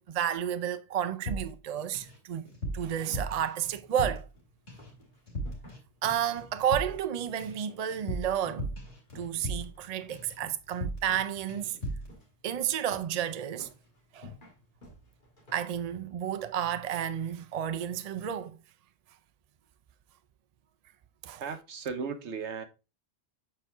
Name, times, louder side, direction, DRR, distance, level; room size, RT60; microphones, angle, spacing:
voice 1, 0.0-2.4 2.7-4.3 6.0-8.7 9.1-11.8 12.4-13.7 14.1-14.3 15.5-18.6 21.2-21.4, right 10 dB, 50° right, 0.5 m, -31 dB
sound 1, 1.3-2.2 2.4-4.4 4.7-5.0 5.3-5.8 6.0-9.8 10.1-10.4 10.7-11.2 11.5-12.1, right 1 dB, 65° left, 3.1 m, -37 dB
sound 2, 3.6-17.1, left 2 dB, 40° left, 1.9 m, -54 dB
voice 2, 21.4-22.6, right 5 dB, 70° right, 1.2 m, -36 dB
7.6 x 4.5 x 3.5 m
omnidirectional pair, 1.2 m